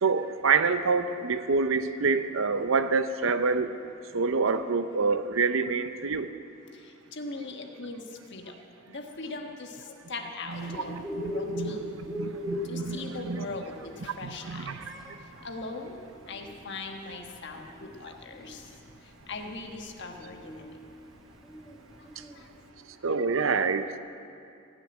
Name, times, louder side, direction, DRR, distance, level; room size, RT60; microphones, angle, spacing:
voice 1, 0.0-3.8 4.1-6.3 10.5-13.5 14.2-14.9 23.0-24.0, right 4 dB, 70° right, 10 dB, 0.7 m, -27 dB
voice 2, 6.7-8.0 8.3-8.5 8.9-11.0 11.2-11.9 12.6-14.7 15.4-16.0 16.3-18.7 19.3-20.6 22.0-22.1 22.3-22.5 23.0-23.1, left 3 dB, 55° left, 3 dB, 1.3 m, -40 dB
Bird, 10.5-22.7, left 1 dB, ahead, 1.9 m, -40 dB
16.5 x 6.8 x 9.0 m, 2.5 s
head